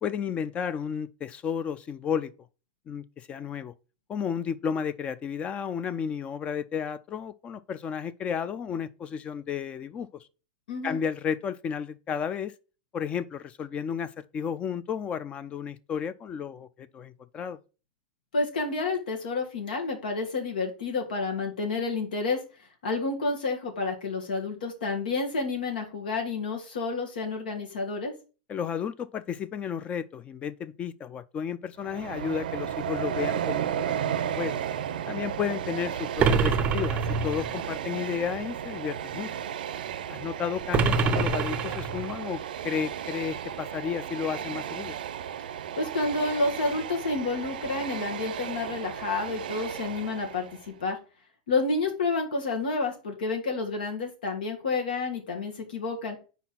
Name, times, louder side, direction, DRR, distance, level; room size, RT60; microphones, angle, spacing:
voice 1, 0.0-2.3 2.9-3.7 4.1-10.3 10.8-12.5 12.9-17.6 28.5-34.6 35.1-39.3 40.1-45.0, left 7 dB, 25° left, 0.4 m, -32 dB
voice 2, 10.7-11.0 18.3-22.4 22.8-28.1 45.7-51.0 51.5-56.2, left 3 dB, 90° left, 1.5 m, -29 dB
Train, 31.8-50.7, right 9 dB, 85° right, 0.5 m, -34 dB
sound 1, 36.2-37.6 40.7-42.2, right 5 dB, 25° right, 0.5 m, -25 dB
4.6 x 4.2 x 5.8 m
supercardioid pair, 135°, 5 cm